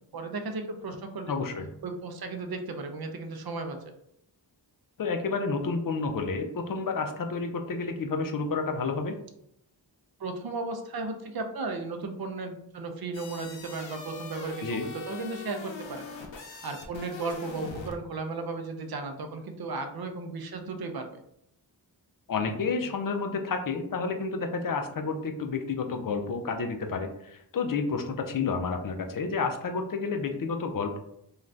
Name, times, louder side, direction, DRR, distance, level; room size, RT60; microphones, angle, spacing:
voice 1, 0.0-1.4 1.8-3.8 10.2-16.1 16.4-21.1, right 3 dB, 55° right, 5 dB, 0.5 m, -35 dB
voice 2, 1.3-1.7 5.0-9.1 14.6-14.8 22.3-31.0, left 4 dB, 50° left, 5 dB, 0.5 m, -30 dB
sound 1, 13.1-18.0, left 4 dB, 90° left, 0.6 m, -42 dB
2.5 x 2.3 x 3.2 m, 0.75 s
wide cardioid pair, 85°, 44 cm